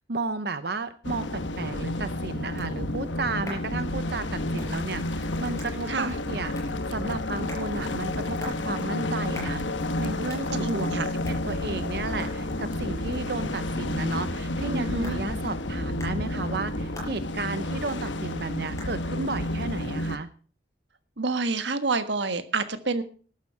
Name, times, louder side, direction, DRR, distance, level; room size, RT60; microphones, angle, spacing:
voice 1, 0.1-6.5 6.9-9.7 10.0-20.3, right 3 dB, 55° right, 12 dB, 0.7 m, -33 dB
sound 1, 1.0-20.2, left 1 dB, 85° left, 1.2 m, -30 dB
sound 2, 4.5-21.0, left 1 dB, 15° left, 6.2 m, -49 dB
voice 2, 10.6-11.1 14.7-15.2 21.2-23.0, right 3 dB, 75° right, 10 dB, 1.5 m, -28 dB
14.0 x 11.5 x 4.8 m, 0.40 s
head